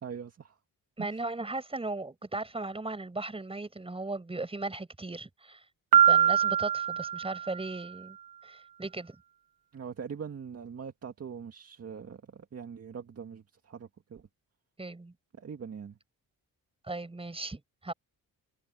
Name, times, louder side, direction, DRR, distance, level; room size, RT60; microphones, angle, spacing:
voice 1, 0.0-0.6 1.0-1.1 9.7-14.2 15.4-16.0, right 6 dB, 40° right, 2.2 m, -42 dB
voice 2, 1.0-5.6 6.1-8.2 8.4-9.2 14.8-15.1 16.9-17.9, right 2 dB, 15° right, 5.6 m, -37 dB
Piano, 5.9-7.8, right 9 dB, 75° right, 1.3 m, -24 dB
open air
cardioid pair, 130°, 37 cm